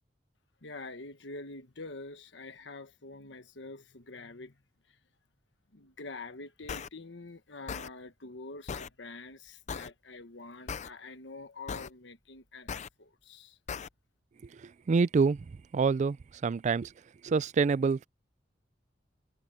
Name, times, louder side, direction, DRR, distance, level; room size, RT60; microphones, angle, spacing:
voice 1, 0.6-4.6 4.9-5.0 5.7-13.6, left 3 dB, 70° left, 1.4 m, -46 dB
sound 1, 6.7-6.9 7.7-7.9 8.7-8.9 9.7-9.9 10.7-10.9 11.7-11.9 12.7-12.9 13.7-13.9, left 6 dB, 40° left, 0.5 m, -37 dB
voice 2, 14.5-15.5 15.7-16.2 16.4-16.9 17.2-18.1, right 5 dB, 40° right, 0.3 m, -26 dB
head